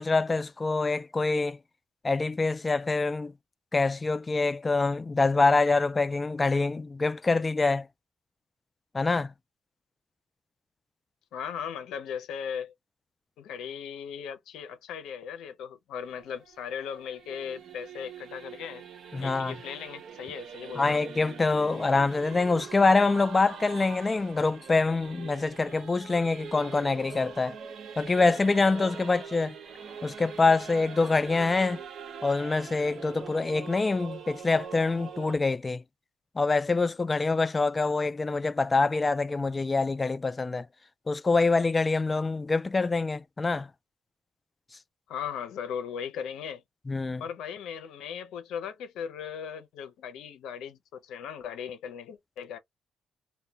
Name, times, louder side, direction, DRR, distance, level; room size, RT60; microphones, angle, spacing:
voice 1, 0.0-1.6 2.0-3.3 3.7-7.9 8.9-9.3 19.1-19.5 20.8-27.6 28.0-29.5 30.0-31.8 32.2-35.8 36.4-40.7 41.1-43.7 46.9-47.2, left 3 dB, 25° left, 0.3 m, -25 dB
voice 2, 11.3-12.7 13.4-18.8 19.2-21.0 45.1-46.6 47.2-52.6, left 7 dB, 85° left, 0.6 m, -38 dB
Singing / Musical instrument, 16.0-35.4, right 7 dB, 65° right, 0.6 m, -43 dB
2.2 x 2.1 x 2.7 m
cardioid pair, 90°, 0 cm